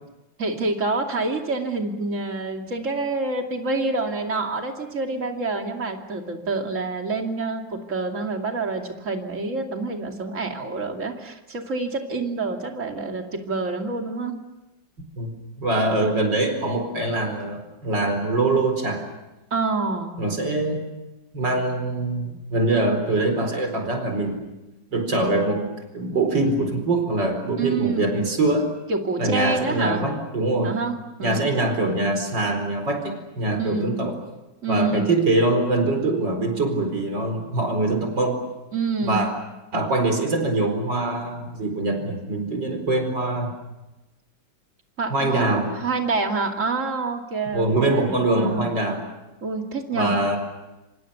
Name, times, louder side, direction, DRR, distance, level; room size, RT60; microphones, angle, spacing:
voice 1, 0.4-14.4 19.5-20.2 27.6-28.1 28.9-30.0 30.6-31.5 33.6-34.1 34.6-35.1 38.7-39.3 45.0-45.5 45.7-48.6 49.4-50.4, right 3 dB, 45° right, 3 dB, 3.0 m, -27 dB
voice 2, 15.6-19.0 20.2-20.9 21.3-24.5 24.9-28.7 29.2-30.7 31.2-34.2 34.7-38.4 39.0-39.3 39.7-43.6 45.1-45.7 47.5-49.0 49.9-50.4, right 2 dB, 80° right, 5 dB, 5.1 m, -23 dB
27.0 x 26.5 x 7.0 m, 1.0 s
omnidirectional pair, 1.9 m